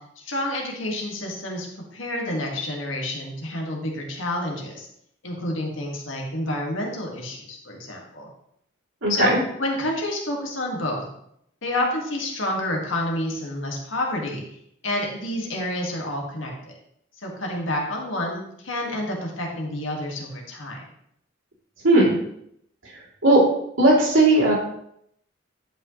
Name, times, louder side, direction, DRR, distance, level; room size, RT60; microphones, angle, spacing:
voice 1, 0.2-1.7 1.9-4.9 5.2-8.3 9.1-9.3 9.6-11.0 11.6-14.4 14.8-16.7 17.2-20.8, left 1 dB, 90° left, 0 dB, 1.9 m, -29 dB
voice 2, 9.0-9.4 21.8-22.2 23.2-23.4 23.8-24.5, right 2 dB, 85° right, -5 dB, 2.9 m, -17 dB
11.0 x 5.4 x 3.1 m, 0.73 s
head